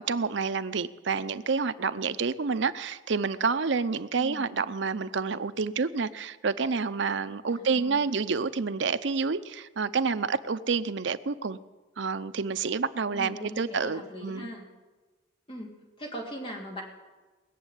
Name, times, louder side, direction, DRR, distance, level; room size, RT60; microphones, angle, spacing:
voice 1, 0.0-11.6 12.0-14.5, right 5 dB, 65° right, 0.6 m, -29 dB
voice 2, 4.2-4.7 7.5-8.2 13.1-14.7 15.5-16.8, equal, 25° left, 2.9 m, -40 dB
20.5 x 7.3 x 9.3 m
head